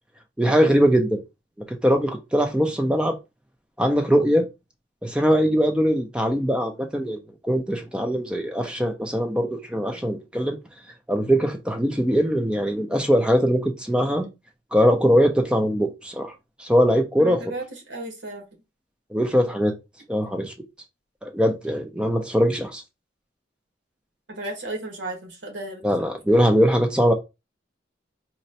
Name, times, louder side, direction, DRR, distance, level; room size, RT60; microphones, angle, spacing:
voice 1, 0.4-1.2 1.6-3.2 3.8-4.5 5.0-7.2 7.4-10.6 11.1-14.3 14.7-16.3 16.6-17.4 19.1-19.7 20.1-20.5 21.2-22.8 25.8-27.1, equal, 5° right, 0.4 m, -21 dB
voice 2, 17.2-18.4 24.3-25.9, right 2 dB, 80° right, 1.2 m, -34 dB
4.1 x 2.1 x 2.6 m
head